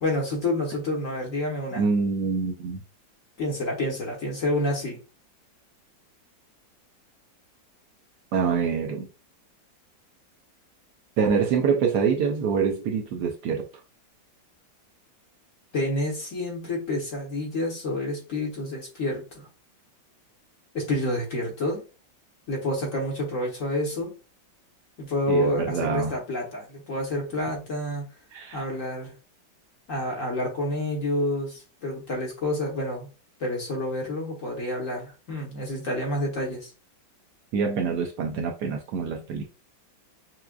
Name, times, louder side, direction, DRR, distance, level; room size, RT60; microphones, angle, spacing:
voice 1, 0.0-1.8 3.4-5.0 15.7-19.5 20.7-21.8 22.5-24.1 25.0-28.1 28.5-29.1 29.9-33.1 33.4-36.7, left 1 dB, 50° left, 1.3 m, -28 dB
voice 2, 1.8-2.8 8.3-9.1 11.2-13.7 25.3-26.2 28.3-28.6 37.5-39.4, right 6 dB, 70° right, 1.1 m, -25 dB
5.9 x 2.4 x 2.2 m
omnidirectional pair, 2.1 m